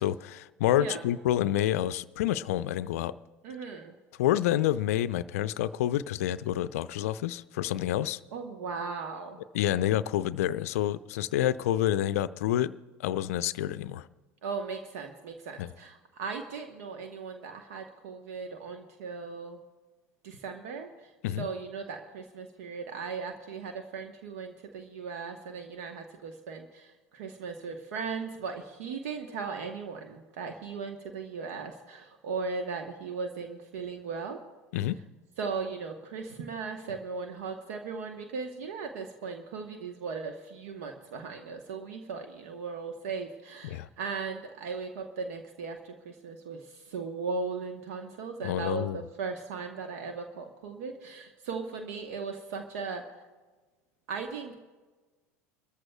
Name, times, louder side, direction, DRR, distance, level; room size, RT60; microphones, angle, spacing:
voice 1, 0.0-3.1 4.2-8.2 9.5-12.7 13.0-14.1 15.6-15.7 21.2-21.5 34.7-35.0 43.6-43.9 48.4-49.0, left 12 dB, 65° left, 15 dB, 0.4 m, -28 dB
voice 2, 0.8-1.1 3.4-3.9 8.3-9.4 14.4-19.6 20.2-34.4 35.4-53.0 54.1-54.5, right 4 dB, 65° right, 5 dB, 1.0 m, -37 dB
26.0 x 14.0 x 2.3 m, 1.3 s
figure-of-eight pair, 75°, 8 cm